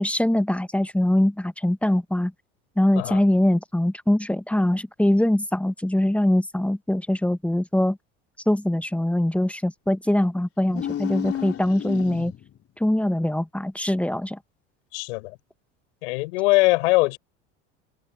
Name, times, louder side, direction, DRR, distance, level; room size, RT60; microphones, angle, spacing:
voice 1, 0.0-2.3 2.8-8.0 8.5-12.3 12.8-14.4, left 1 dB, 5° left, 1.0 m, -22 dB
sound 1, 10.6-12.6, left 10 dB, 40° left, 4.2 m, -32 dB
voice 2, 14.9-15.4 16.0-17.2, left 23 dB, 75° left, 6.8 m, -21 dB
hypercardioid pair, 85°, 34 cm